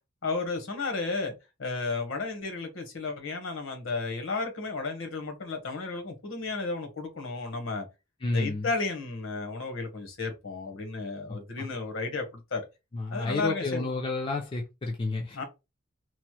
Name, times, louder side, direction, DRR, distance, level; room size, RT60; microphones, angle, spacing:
voice 1, 0.2-1.3 1.6-7.9 8.3-12.2 12.5-12.6 13.1-13.8 15.3-15.4, left 3 dB, 70° left, 1.0 m, -33 dB
voice 2, 8.2-8.7 11.3-11.7 12.9-15.4, left 3 dB, 25° left, 0.4 m, -31 dB
3.0 x 2.1 x 2.9 m
head